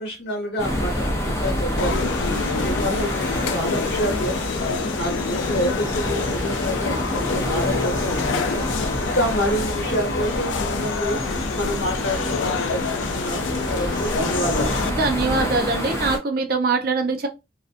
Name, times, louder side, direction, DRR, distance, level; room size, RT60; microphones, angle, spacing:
voice 1, 0.0-11.2 11.5-14.8, equal, 60° left, 1.1 m, -28 dB
sound 1, 0.6-16.2, left 1 dB, 15° left, 0.4 m, -27 dB
sound 2, 1.8-14.9, left 5 dB, 75° left, 0.3 m, -27 dB
voice 2, 15.0-17.3, right 3 dB, 50° right, 0.4 m, -22 dB
2.4 x 2.1 x 2.4 m
head